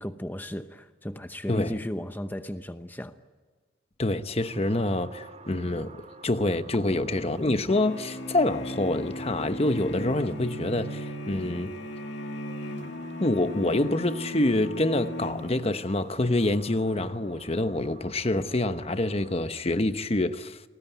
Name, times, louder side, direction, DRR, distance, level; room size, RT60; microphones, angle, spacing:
voice 1, 0.0-3.1, equal, 10° left, 0.9 m, -35 dB
voice 2, 4.0-11.7 13.2-20.6, left 2 dB, 35° left, 1.0 m, -26 dB
sound 1, 4.4-19.3, right 3 dB, 40° right, 3.0 m, -51 dB
sound 2, 7.7-16.0, equal, 80° left, 2.7 m, -36 dB
29.0 x 20.0 x 9.2 m
head